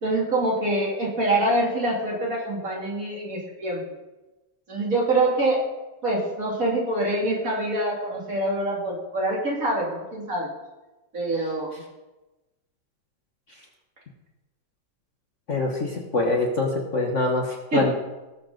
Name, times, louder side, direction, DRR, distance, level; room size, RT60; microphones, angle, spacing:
voice 1, 0.0-3.8 4.7-5.6 6.0-10.5 11.1-11.7 17.7-17.9, right 2 dB, 50° right, -3 dB, 3.3 m, -25 dB
voice 2, 15.5-17.9, left 2 dB, 45° left, 0 dB, 1.5 m, -24 dB
18.0 x 7.0 x 4.0 m, 1.1 s
omnidirectional pair, 1.9 m